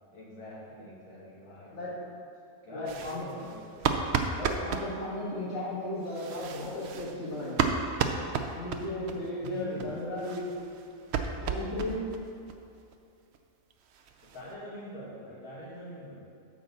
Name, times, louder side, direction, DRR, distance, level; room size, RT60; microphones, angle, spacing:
voice 1, 0.1-2.1 2.6-4.1 9.4-9.9 14.2-16.3, equal, 70° left, -7 dB, 2.7 m, -44 dB
voice 2, 2.7-3.3 4.3-7.6 8.5-10.5 11.4-12.0, left 1 dB, 45° left, -11 dB, 2.3 m, -35 dB
sound 1, 2.9-4.9 6.1-9.2 9.4-9.5 9.8-9.9 10.2-12.2 12.5-12.6 12.9-13.0 13.3-13.4 13.7-14.5, right 6 dB, 60° right, 0.7 m, -32 dB
9.0 x 4.2 x 7.0 m, 2.4 s
omnidirectional pair, 1.6 m